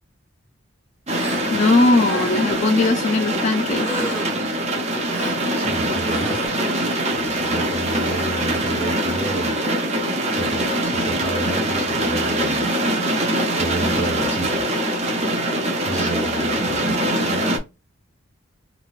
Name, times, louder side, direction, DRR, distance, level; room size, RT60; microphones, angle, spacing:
Gasp, 1.1-1.5 1.9-2.5 3.8-4.5 5.1-5.4 6.0-6.5, right 1 dB, 10° right, 1.2 m, -32 dB
sound 1, 1.1-17.6, right 1 dB, 30° right, 0.7 m, -23 dB
voice 1, 1.5-3.9, left 2 dB, 35° left, 0.4 m, -19 dB
voice 2, 5.5-6.5 7.1-9.6 10.0-13.0 13.2-14.7 15.8-16.9, right 1 dB, 10° left, 0.8 m, -31 dB
3.7 x 2.4 x 2.3 m
head